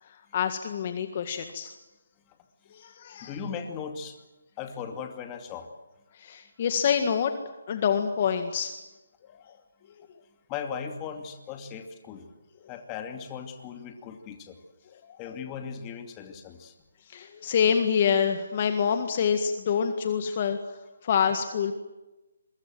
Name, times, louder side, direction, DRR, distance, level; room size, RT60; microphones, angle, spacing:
voice 1, 0.0-1.7 2.7-3.3 6.1-7.3 7.7-8.7 9.5-9.6 15.0-15.3 17.1-20.6 21.0-21.7, left 7 dB, 35° left, 7 dB, 1.8 m, -26 dB
voice 2, 3.2-4.2 4.6-5.7 10.5-12.3 12.7-14.6 15.2-16.7, left 7 dB, 20° left, 5 dB, 2.5 m, -38 dB
27.5 x 23.5 x 7.7 m, 1.1 s
hypercardioid pair, 160°, 0 cm